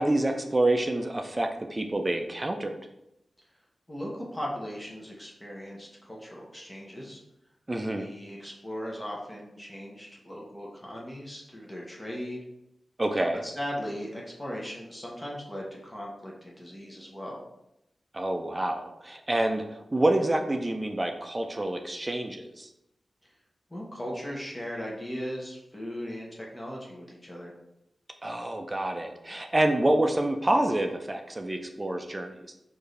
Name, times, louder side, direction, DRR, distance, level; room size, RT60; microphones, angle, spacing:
voice 1, 0.0-2.8 7.7-8.1 13.0-13.4 18.1-22.7 28.2-32.5, right 1 dB, 25° right, 5 dB, 0.4 m, -27 dB
voice 2, 3.9-7.2 8.0-12.4 13.4-17.4 23.2-23.3 23.7-27.5, equal, 20° left, -3 dB, 0.9 m, -38 dB
4.5 x 2.6 x 3.2 m, 0.86 s
cardioid pair, 65°, 0 cm